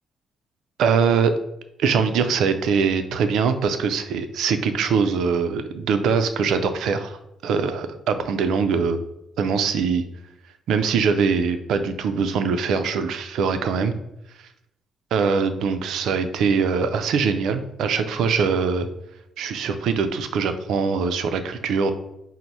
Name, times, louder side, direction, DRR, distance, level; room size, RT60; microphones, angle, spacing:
voice 1, 0.8-1.3 1.8-9.0 9.4-10.0 10.7-13.9 15.1-18.9 19.4-21.9, right 5 dB, 80° right, 9 dB, 0.4 m, -22 dB
4.5 x 2.0 x 4.0 m, 0.85 s
cardioid pair, 85°, 0 cm